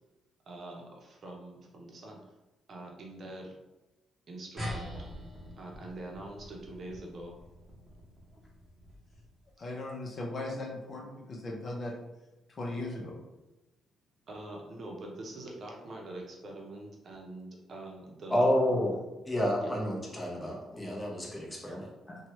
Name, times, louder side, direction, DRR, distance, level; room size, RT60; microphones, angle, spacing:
voice 1, 0.5-2.2 2.7-3.5 4.3-4.9 5.5-7.3 14.3-18.5 18.9-19.0 19.6-19.7 21.6-21.8, right 2 dB, 50° right, 0 dB, 0.7 m, -44 dB
sound 1, 4.6-9.4, equal, 15° right, 0.9 m, -44 dB
voice 2, 9.6-11.9 12.5-13.1, left 2 dB, 45° left, -2 dB, 0.7 m, -38 dB
voice 3, 18.3-19.0 19.3-22.2, equal, 10° left, -2 dB, 0.8 m, -30 dB
2.9 x 2.3 x 3.0 m, 1.0 s
cardioid pair, 90°, 0 cm